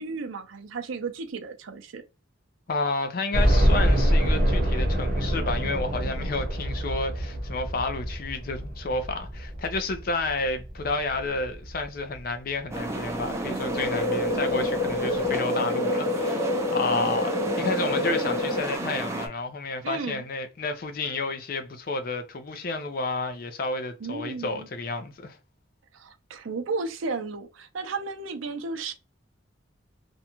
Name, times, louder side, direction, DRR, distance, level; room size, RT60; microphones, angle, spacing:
voice 1, 0.0-2.0 19.8-20.2 24.0-24.7 25.9-28.9, right 4 dB, 80° right, 0.5 m, -34 dB
voice 2, 2.7-25.4, left 3 dB, 45° left, 0.4 m, -31 dB
sound 1, 3.3-12.2 12.7-12.8 13.2-13.3 14.5-14.6 14.9-15.0, equal, 45° right, 0.8 m, -25 dB
sound 2, 12.7-19.3, right 1 dB, 15° right, 0.4 m, -32 dB
sound 3, 13.6-18.6, left 2 dB, 85° left, 0.8 m, -28 dB
2.5 x 2.2 x 2.8 m
head